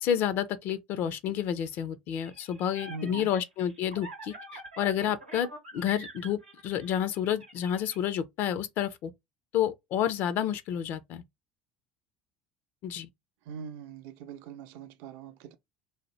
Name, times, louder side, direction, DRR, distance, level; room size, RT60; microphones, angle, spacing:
voice 1, 0.0-9.1 9.5-11.2 12.8-13.1, left 10 dB, 50° left, 0.4 m, -30 dB
sound 1, 2.2-8.0, right 2 dB, 90° right, 0.8 m, -46 dB
voice 2, 2.9-3.3 13.5-15.6, right 6 dB, 60° right, 0.5 m, -42 dB
2.8 x 2.0 x 3.1 m
figure-of-eight pair, 65°, 4 cm